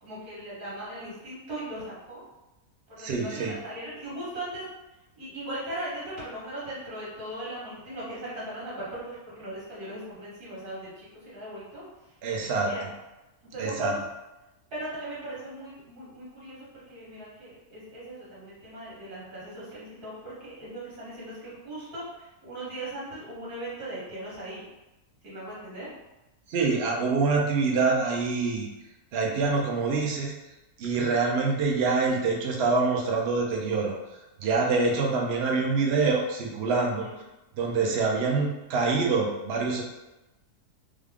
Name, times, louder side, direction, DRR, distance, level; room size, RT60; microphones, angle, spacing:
voice 1, 0.0-2.2 2.9-4.6 5.2-11.8 12.4-12.9 13.5-14.0 14.7-24.6 25.2-25.9 37.0-37.2, right 1 dB, 80° right, -8 dB, 1.9 m, -39 dB
voice 2, 3.0-3.5 12.2-12.7 13.6-13.9 26.5-28.7 29.1-30.3 30.8-33.9 34.4-37.1 37.6-39.8, right 4 dB, 55° right, 0 dB, 0.7 m, -25 dB
3.5 x 2.3 x 3.4 m, 1.0 s
omnidirectional pair, 1.6 m